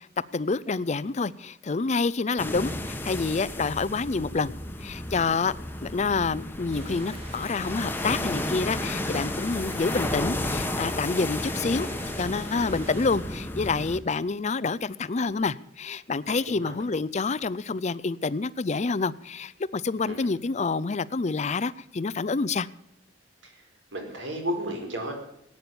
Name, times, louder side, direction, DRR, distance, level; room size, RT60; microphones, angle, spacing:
voice 1, 0.3-4.5 4.8-5.5 5.8-11.9 12.2-22.7, left 4 dB, 35° left, 18 dB, 0.5 m, -28 dB
sound 1, 2.4-14.0, left 1 dB, 10° left, 1.1 m, -33 dB
sound 2, 6.7-13.2, right 2 dB, 30° right, 3.3 m, -45 dB
voice 2, 16.5-16.8 20.0-20.3 23.4-23.6 23.9-25.1, equal, 80° right, 3 dB, 4.3 m, -33 dB
16.5 x 9.5 x 7.0 m, 0.78 s
head